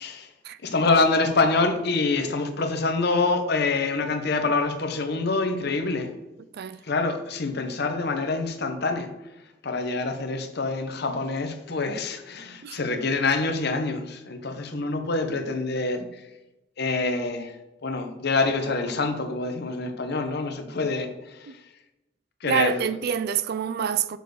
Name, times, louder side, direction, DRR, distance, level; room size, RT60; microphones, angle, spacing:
voice 1, 0.0-0.3 0.6-6.1 6.8-9.1 9.6-16.2 16.8-17.5 17.8-21.6 22.4-23.0, left 3 dB, 60° left, 1.0 m, -26 dB
voice 2, 22.5-24.2, right 8 dB, 55° right, 0.4 m, -26 dB
6.5 x 4.5 x 4.8 m
head